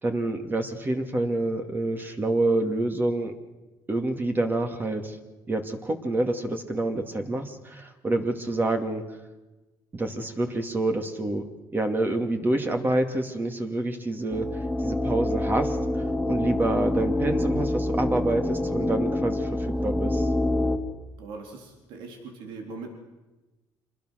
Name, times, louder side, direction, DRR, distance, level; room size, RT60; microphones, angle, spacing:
voice 1, 0.0-3.3 3.9-5.2 5.5-9.0 9.9-11.4 11.7-15.8 16.3-20.3, right 2 dB, 25° right, 5 dB, 2.5 m, -27 dB
sound 1, 14.3-20.8, left 1 dB, ahead, 2.6 m, -26 dB
voice 2, 21.2-22.9, right 3 dB, 85° right, 3 dB, 3.9 m, -40 dB
27.0 x 21.0 x 6.6 m, 1.1 s
cardioid pair, 105°, 8 cm